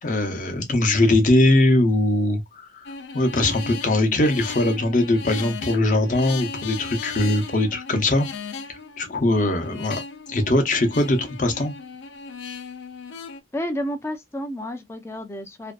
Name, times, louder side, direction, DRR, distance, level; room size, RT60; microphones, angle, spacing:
voice 1, 0.0-2.9 3.1-8.3 9.0-10.0 10.3-11.7, left 2 dB, 45° left, 0.7 m, -21 dB
sound 1, 2.9-13.4, left 4 dB, 80° left, 0.4 m, -36 dB
voice 2, 13.5-15.7, equal, 15° left, 0.4 m, -30 dB
2.6 x 2.2 x 2.3 m
head